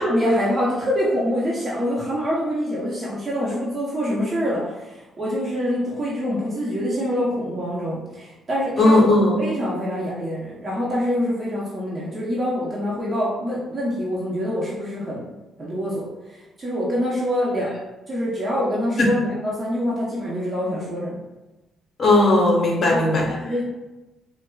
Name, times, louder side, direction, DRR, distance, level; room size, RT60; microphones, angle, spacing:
voice 1, 0.0-9.0 9.4-15.3 15.6-17.7 18.1-21.2 22.8-23.6, equal, 30° right, -6 dB, 0.8 m, -25 dB
voice 2, 8.8-9.4 19.0-19.1 22.0-23.3, left 2 dB, 50° left, -1 dB, 0.9 m, -17 dB
4.4 x 2.1 x 2.3 m, 1.1 s
cardioid pair, 90°, 0 cm